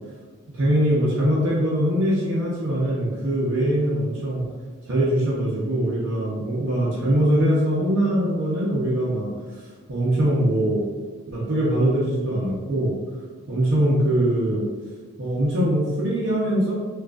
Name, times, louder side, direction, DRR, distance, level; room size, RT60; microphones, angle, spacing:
voice 1, 0.5-4.4 4.9-9.3 9.9-10.8 11.3-12.9 13.5-14.7 15.2-16.7, right 1 dB, 55° right, -6 dB, 0.6 m, -22 dB
4.9 x 2.4 x 2.3 m, 1.5 s
head